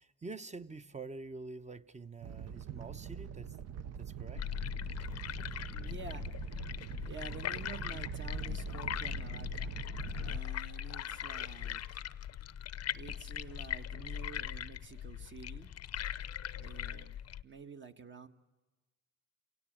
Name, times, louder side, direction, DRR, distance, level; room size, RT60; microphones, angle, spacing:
voice 1, 0.0-3.6 4.0-4.4, right 3 dB, 25° right, 10 dB, 0.9 m, -46 dB
Animal, 2.2-10.4, right 8 dB, 60° right, 0.9 m, -43 dB
sound 1, 4.4-17.4, left 10 dB, 55° left, 0.7 m, -40 dB
voice 2, 5.7-6.6 7.0-9.7 10.2-12.1 12.9-15.7 16.5-18.3, right 5 dB, 40° right, 7 dB, 1.5 m, -50 dB
28.5 x 17.5 x 8.7 m, 1.2 s
cardioid pair, 90°, 30 cm